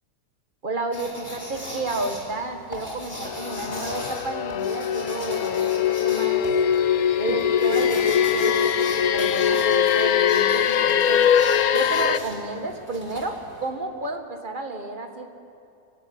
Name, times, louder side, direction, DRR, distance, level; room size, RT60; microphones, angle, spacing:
voice 1, 0.6-5.7 6.0-6.4 7.2-11.2 11.7-15.3, right 2 dB, 30° right, 5 dB, 2.0 m, -31 dB
sound 1, 0.9-13.7, equal, 25° left, 4.6 m, -38 dB
A minor descent drone, 3.2-12.2, left 8 dB, 65° left, 1.2 m, -22 dB
24.5 x 17.5 x 9.8 m, 2.7 s
omnidirectional pair, 1.7 m